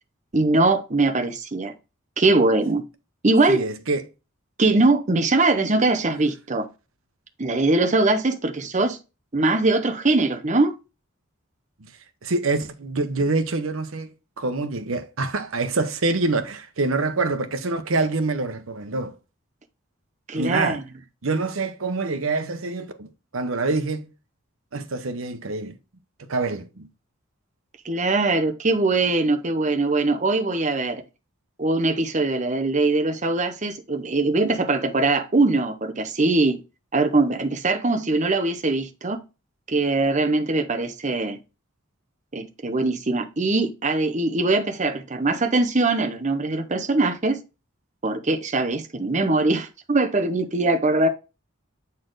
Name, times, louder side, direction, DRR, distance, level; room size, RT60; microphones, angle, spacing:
voice 1, 0.3-1.7 2.2-2.8 3.2-3.6 4.6-6.7 7.4-9.0 9.3-10.7 20.3-20.8 27.8-31.0 31.6-36.6 36.9-39.2 39.7-41.4 42.3-47.4 48.0-51.1, right 2 dB, 35° right, 0.9 m, -22 dB
voice 2, 3.5-4.0 12.2-14.1 14.4-19.1 20.4-20.8 21.2-24.1 24.7-25.8 26.2-26.9, right 3 dB, 80° right, 0.9 m, -26 dB
7.8 x 4.3 x 3.9 m
head